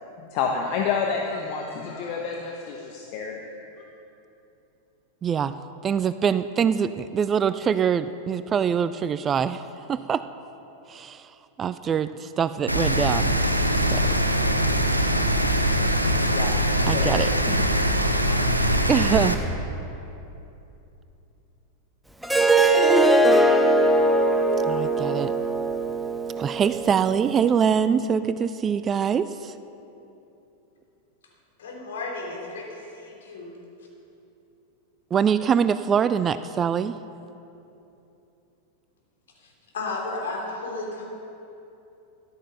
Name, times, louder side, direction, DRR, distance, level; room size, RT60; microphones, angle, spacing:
voice 1, 0.2-3.4 3.8-3.9 16.3-16.5 16.9-17.8 18.2-18.4, left 5 dB, 45° left, 1 dB, 1.1 m, -29 dB
voice 2, 5.2-5.6 5.8-9.6 9.9-10.2 10.9-11.3 11.6-13.4 13.8-14.2 16.9-17.3 18.9-19.4 24.7-25.3 26.4-29.5 35.1-37.0, right 7 dB, 25° right, 13 dB, 0.4 m, -24 dB
Rain, 12.7-19.3, equal, 90° right, 0.8 m, -22 dB
Harp, 22.2-27.4, right 2 dB, ahead, 0.8 m, -20 dB
voice 3, 31.6-33.5 39.4-41.0, left 3 dB, 60° left, -2 dB, 3.5 m, -34 dB
14.0 x 11.5 x 5.6 m, 2.9 s
figure-of-eight pair, 90°, 0 cm